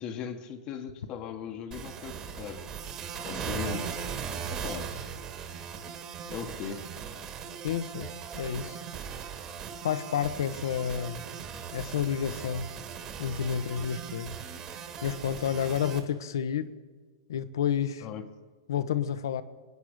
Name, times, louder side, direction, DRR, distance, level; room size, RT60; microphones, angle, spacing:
voice 1, 0.0-2.7 3.2-3.9 4.5-4.9 6.3-7.0 18.0-18.3, left 7 dB, 35° left, 5 dB, 1.1 m, -38 dB
sound 1, 1.7-16.0, right 7 dB, 30° right, 1.9 m, -39 dB
voice 2, 7.6-8.1 8.3-8.8 9.8-11.2 11.7-12.7 13.2-14.4 15.0-16.7 17.3-18.1 18.7-19.4, left 8 dB, 75° left, 12 dB, 1.0 m, -30 dB
25.5 x 9.6 x 5.1 m, 1.4 s
hypercardioid pair, 135°, 2 cm